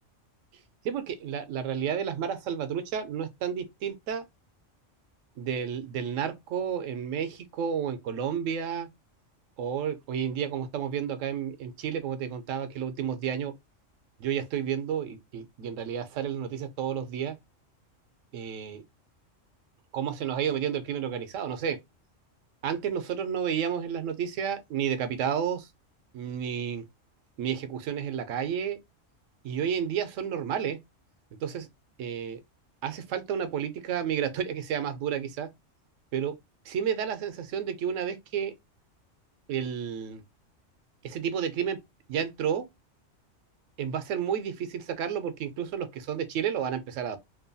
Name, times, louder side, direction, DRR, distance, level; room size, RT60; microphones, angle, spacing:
voice 1, 0.8-4.3 5.4-8.9 9.6-13.5 14.2-17.4 18.3-18.8 19.9-21.8 22.6-25.7 26.1-26.9 27.4-28.8 29.4-30.8 31.4-31.7 32.0-32.4 32.8-35.5 36.1-36.4 36.7-38.5 39.5-40.2 41.0-41.8 42.1-42.7 43.8-47.2, right 8 dB, 80° right, 0.9 m, -31 dB
2.9 x 2.2 x 2.5 m
omnidirectional pair, 1.3 m